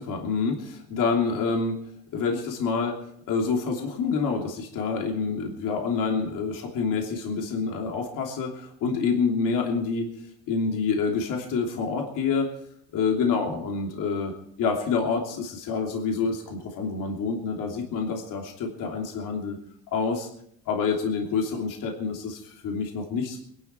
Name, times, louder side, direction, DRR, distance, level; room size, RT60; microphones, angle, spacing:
voice 1, 0.0-1.8 2.1-3.0 3.3-10.1 10.5-12.5 12.9-14.3 14.6-19.6 19.9-20.3 20.7-23.4, left 5 dB, 60° left, 1 dB, 3.1 m, -27 dB
23.5 x 12.0 x 4.5 m, 0.68 s
cardioid pair, 130°, 37 cm